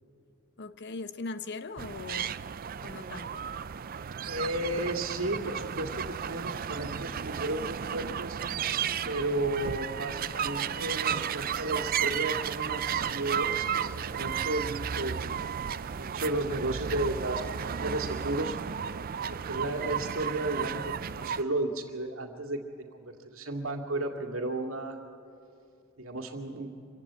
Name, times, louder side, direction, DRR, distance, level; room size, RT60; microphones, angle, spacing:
voice 1, 0.6-2.4 2.8-3.5, left 3 dB, 55° left, 12 dB, 0.8 m, -40 dB
sound 1, 1.8-21.4, right 8 dB, 40° right, 0.4 m, -33 dB
voice 2, 4.3-8.4 9.0-15.4 15.9-18.6 19.3-22.6 22.9-25.0 26.0-26.7, right 2 dB, 70° right, 3 dB, 2.3 m, -33 dB
25.5 x 16.0 x 8.7 m, 2.5 s
head